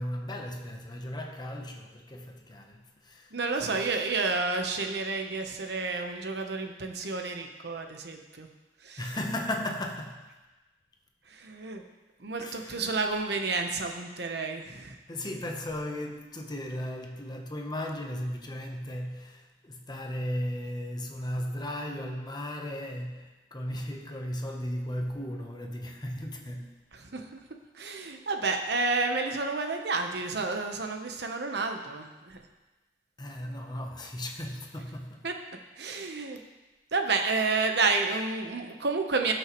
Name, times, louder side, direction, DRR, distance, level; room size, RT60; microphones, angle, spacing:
voice 1, 0.0-4.1 9.0-10.3 12.4-12.9 15.1-26.8 33.2-35.3, left 1 dB, 25° left, 2 dB, 1.0 m, -36 dB
voice 2, 3.3-8.5 8.8-9.0 11.3-11.8 12.2-15.0 27.1-27.4 27.7-32.4 35.2-35.3 35.8-36.4 36.9-39.3, right 3 dB, 70° right, 4 dB, 1.0 m, -30 dB
18.0 x 6.3 x 3.2 m, 1.2 s
head